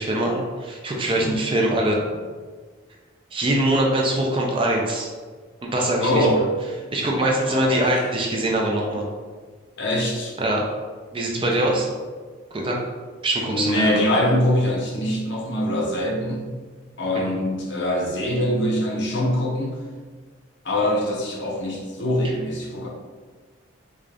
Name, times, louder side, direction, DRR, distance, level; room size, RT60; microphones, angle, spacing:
voice 1, 0.0-2.0 3.3-5.1 5.6-6.3 6.9-9.1 10.4-10.7 11.1-11.9 12.5-12.8 13.2-14.0 17.2-17.3, right 1 dB, 25° right, -1 dB, 0.4 m, -23 dB
voice 2, 6.0-6.4 7.4-7.9 9.8-10.3 11.3-11.8 13.5-16.5 17.0-19.8 20.6-22.9, left 1 dB, 60° left, -3 dB, 0.8 m, -23 dB
3.7 x 2.4 x 3.3 m, 1.5 s
head